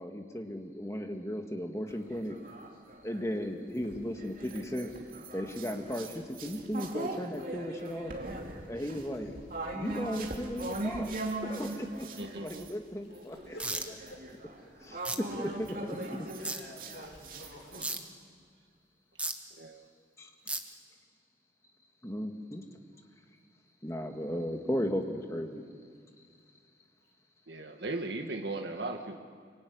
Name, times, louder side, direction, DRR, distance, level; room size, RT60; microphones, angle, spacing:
voice 1, 0.0-2.4 3.0-4.9 5.3-8.1 8.7-9.4 9.7-11.1 11.4-13.5 14.8-15.0 15.3-16.3 20.2-20.3 22.0-22.6 23.8-25.6, equal, 15° left, 4 dB, 1.9 m, -36 dB
sound 1, 1.9-3.3 3.8-12.7 13.1-17.8, right 2 dB, 50° right, 2.7 m, -40 dB
voice 2, 12.2-12.6 19.6-19.8 27.5-29.2, right 2 dB, 75° right, 4 dB, 1.7 m, -37 dB
voice 3, 13.4-14.2 14.6-17.9 20.6-20.7, left 1 dB, 80° left, 0 dB, 6.0 m, -50 dB
sound 2, 13.6-13.8 15.0-15.2 16.4-16.6 17.8-18.0 19.2-19.3 20.5-20.6, right 2 dB, 5° right, 1.2 m, -33 dB
25.0 x 24.0 x 9.7 m, 2.1 s
head